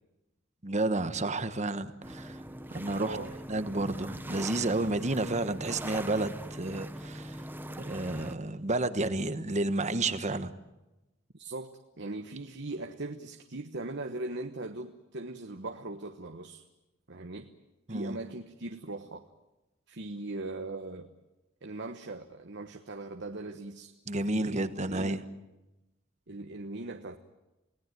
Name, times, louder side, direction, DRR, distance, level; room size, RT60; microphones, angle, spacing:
voice 1, 0.6-2.4 2.7-3.2 3.5-7.4 7.9-10.5 17.9-18.2 24.1-25.2, right 2 dB, 35° right, 11 dB, 1.3 m, -31 dB
sound 1, 2.0-8.3, right 1 dB, 10° right, 1.1 m, -42 dB
voice 2, 3.0-3.3 11.3-16.6 17.1-17.5 17.9-19.3 19.9-21.1 21.6-23.9 24.2-25.2 26.3-27.2, right 2 dB, 60° right, 6 dB, 1.2 m, -40 dB
29.0 x 18.5 x 9.3 m, 1.0 s
head